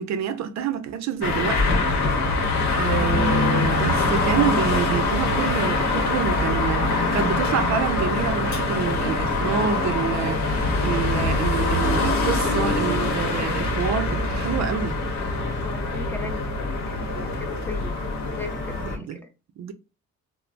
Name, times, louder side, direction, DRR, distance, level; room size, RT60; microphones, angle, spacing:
voice 1, 0.0-1.8 2.7-15.0 18.8-19.2 19.6-19.7, right 7 dB, 65° right, 0.5 m, -27 dB
sound 1, 1.2-19.0, left 2 dB, 70° left, 0.9 m, -23 dB
voice 2, 15.6-16.6 16.9-17.9 18.4-19.3, left 4 dB, 5° left, 0.6 m, -37 dB
3.1 x 2.0 x 2.5 m
cardioid pair, 90°, 30 cm